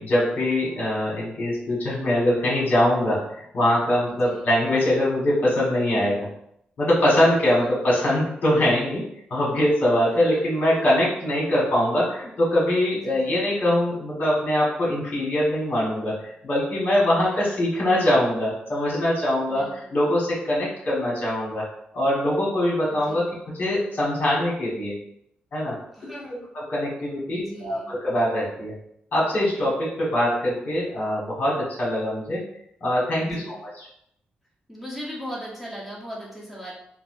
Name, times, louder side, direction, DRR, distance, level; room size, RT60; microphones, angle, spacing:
voice 1, 0.0-6.3 6.8-9.0 9.3-21.6 21.9-23.3 23.6-24.9 25.5-25.8 26.5-28.7 29.1-32.4 32.8-33.9, left 1 dB, 55° left, -5 dB, 1.4 m, -23 dB
voice 2, 4.1-4.4 7.6-7.8 10.1-10.4 12.9-13.5 17.2-17.4 19.5-19.9 22.9-23.3 25.9-26.5 27.3-27.9 33.2-33.6 34.7-36.7, equal, ahead, -6 dB, 0.9 m, -39 dB
4.0 x 2.0 x 2.6 m, 0.74 s
cardioid pair, 100°, 3 cm